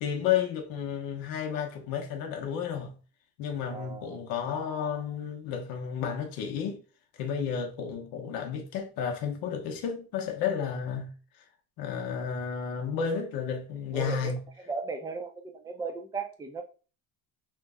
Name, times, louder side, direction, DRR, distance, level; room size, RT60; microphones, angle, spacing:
voice 1, 0.0-2.9 3.4-6.8 7.2-11.1 11.8-14.4, left 7 dB, 85° left, 0.7 m, -32 dB
voice 2, 3.7-4.2 13.9-14.3 14.6-16.6, right 4 dB, 10° right, 0.4 m, -36 dB
3.1 x 2.1 x 3.4 m
cardioid pair, 130°, 34 cm